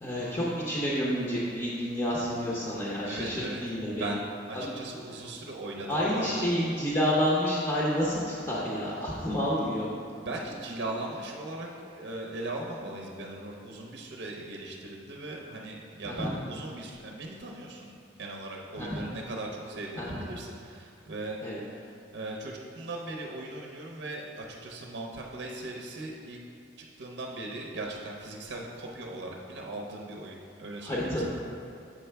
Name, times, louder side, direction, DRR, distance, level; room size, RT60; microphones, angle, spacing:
voice 1, 0.0-4.1 4.5-4.7 5.9-9.9 16.1-16.3 18.8-19.0 20.0-20.2 21.4-21.6 30.8-31.3, equal, 15° left, -6 dB, 0.7 m, -29 dB
voice 2, 3.0-6.5 10.2-21.4 21.7-26.4 26.8-31.3, right 2 dB, 60° right, -1 dB, 0.7 m, -39 dB
7.3 x 5.5 x 3.4 m, 2.5 s
head